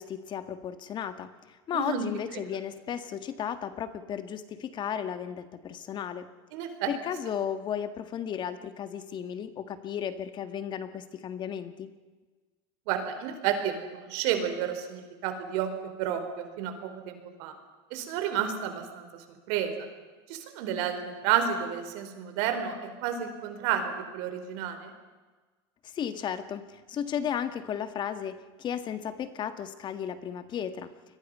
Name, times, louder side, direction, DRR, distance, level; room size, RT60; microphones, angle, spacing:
voice 1, 0.0-6.3 6.9-11.9 25.8-30.9, left 8 dB, 35° left, 11 dB, 1.7 m, -34 dB
voice 2, 1.7-2.1 2.3-2.4 6.5-6.9 12.9-15.7 16.0-17.5 17.9-19.9 20.3-24.9, right 9 dB, 65° right, 7 dB, 4.5 m, -31 dB
28.0 x 22.0 x 5.6 m, 1.3 s
supercardioid pair, 130°, 13 cm